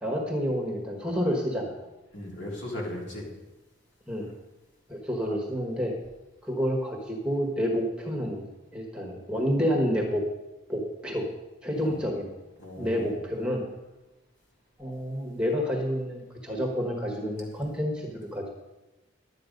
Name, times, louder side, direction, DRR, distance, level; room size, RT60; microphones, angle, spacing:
voice 1, 0.0-1.8 4.1-4.3 4.9-5.9 6.4-8.4 8.7-10.2 10.7-11.3 11.6-12.3 12.8-13.7 14.8-18.5, equal, 5° right, 0 dB, 1.4 m, -29 dB
voice 2, 2.1-3.3 11.8-11.9 12.6-13.1, left 1 dB, 65° left, -2 dB, 3.5 m, -37 dB
11.5 x 8.8 x 5.2 m, 1.0 s
head